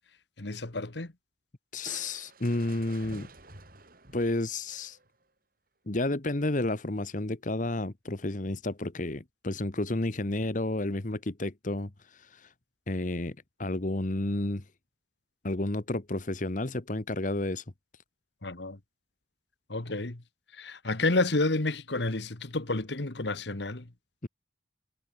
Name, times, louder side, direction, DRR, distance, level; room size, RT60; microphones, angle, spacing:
voice 1, 0.4-1.1 18.4-18.8 19.7-20.2 20.5-23.9, left 2 dB, 70° left, 1.6 m, -30 dB
voice 2, 1.7-3.3 4.1-5.0 5.9-12.5 12.9-14.6 15.4-17.6 24.2-24.3, left 2 dB, 45° left, 1.3 m, -31 dB
Crushing, 1.9-5.2, right 3 dB, 50° right, 6.2 m, -50 dB
head